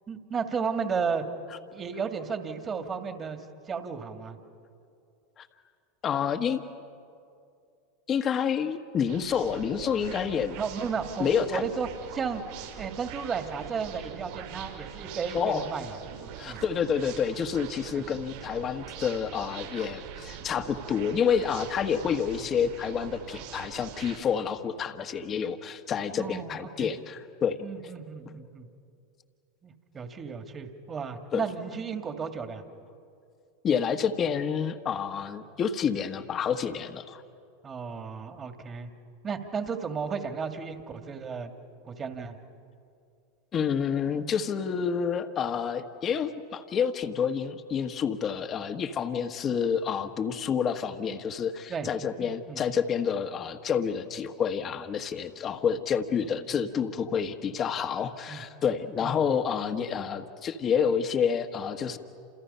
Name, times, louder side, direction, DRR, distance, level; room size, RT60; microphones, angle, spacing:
voice 1, 0.1-1.2 1.7-3.4 3.7-4.4 10.6-12.4 12.8-16.6 17.9-18.0 26.1-26.9 27.6-28.7 29.6-32.6 37.6-38.9 39.2-41.5 41.9-42.4 51.7-51.9 52.2-52.6 58.3-58.4 59.0-59.2, right 5 dB, 30° right, 6 dB, 2.3 m, -34 dB
voice 2, 6.0-6.6 8.1-10.6 11.2-11.7 15.3-15.6 16.4-27.6 31.3-31.4 33.6-37.2 43.5-62.0, left 7 dB, 35° left, 8 dB, 1.4 m, -28 dB
sound 1, 9.1-24.2, right 9 dB, 70° right, 6.0 m, -43 dB
29.0 x 28.0 x 5.7 m, 2.5 s
hypercardioid pair, 100°, 0 cm